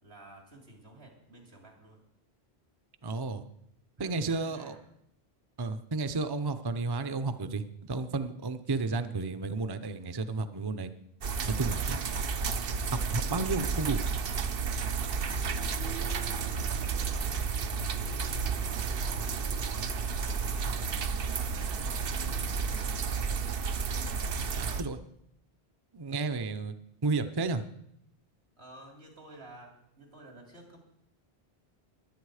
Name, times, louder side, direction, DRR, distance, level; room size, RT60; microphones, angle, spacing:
voice 1, 0.0-2.1 4.0-4.9 17.0-20.9 21.3-23.5 28.6-30.8, right 1 dB, 80° right, 1 dB, 3.5 m, -53 dB
voice 2, 3.0-3.4 4.0-4.7 5.6-10.9 11.5-12.0 12.9-14.0 24.5-25.0 25.9-26.7 27.0-27.6, right 3 dB, 25° right, 10 dB, 0.7 m, -32 dB
sound 1, 11.2-24.8, right 5 dB, 65° right, 1.0 m, -32 dB
21.0 x 8.8 x 4.9 m, 0.76 s
omnidirectional pair, 1.0 m